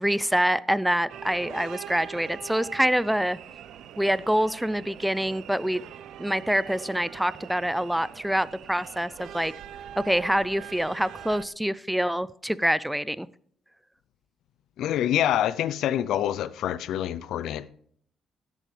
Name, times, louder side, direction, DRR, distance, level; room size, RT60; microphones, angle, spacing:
voice 1, 0.0-3.4 4.0-5.8 6.2-9.5 10.0-13.3, equal, 5° right, 0.4 m, -26 dB
sound 1, 1.1-11.5, right 10 dB, 75° right, 0.6 m, -43 dB
voice 2, 14.8-17.7, left 11 dB, 80° left, 0.5 m, -26 dB
12.5 x 11.0 x 3.3 m
cardioid pair, 90°, 0 cm